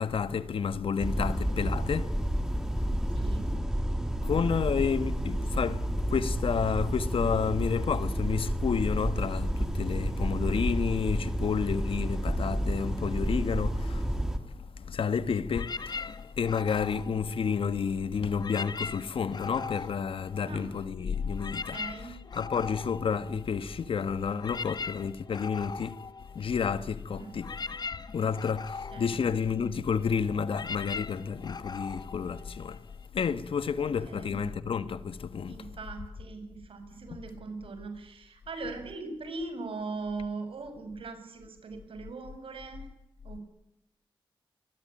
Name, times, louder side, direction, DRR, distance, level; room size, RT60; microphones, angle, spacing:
voice 1, 0.0-2.1 4.2-14.0 14.9-26.0 26.3-27.5 28.1-32.8 33.1-35.6, left 6 dB, 80° left, 1.5 m, -30 dB
sound 1, 1.0-14.4, equal, 5° right, 3.1 m, -30 dB
voice 2, 3.1-3.5 20.4-20.7 21.5-22.2 27.1-27.4 28.9-29.1 33.8-34.4 35.4-42.9 43.2-43.4, right 3 dB, 80° right, 7.3 m, -40 dB
sound 2, 15.5-17.9 18.3-20.8 21.1-33.1, left 4 dB, 50° left, 1.2 m, -41 dB
25.5 x 22.0 x 9.0 m
wide cardioid pair, 140°, 9 cm